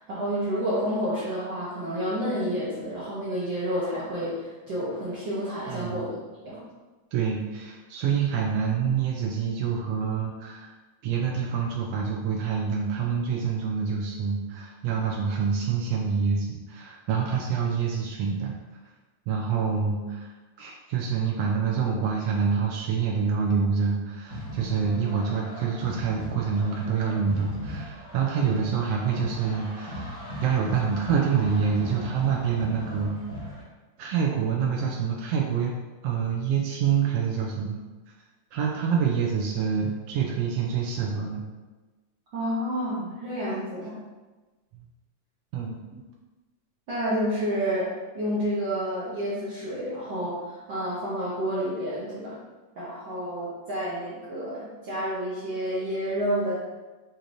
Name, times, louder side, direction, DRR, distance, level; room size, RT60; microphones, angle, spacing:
voice 1, 0.0-6.2 6.4-6.6 42.3-43.9 46.9-47.9 48.1-52.4 52.8-56.5, equal, 70° right, -10 dB, 1.1 m, -29 dB
voice 2, 5.7-6.1 7.1-10.7 11.0-18.5 19.3-30.1 30.4-33.1 34.0-35.8 36.0-37.8 38.5-41.4 45.5-46.0, right 6 dB, 90° right, -1 dB, 1.4 m, -26 dB
sound 1, 24.3-33.6, left 1 dB, 35° right, 0.4 m, -38 dB
6.4 x 2.9 x 2.6 m, 1.2 s
omnidirectional pair, 3.4 m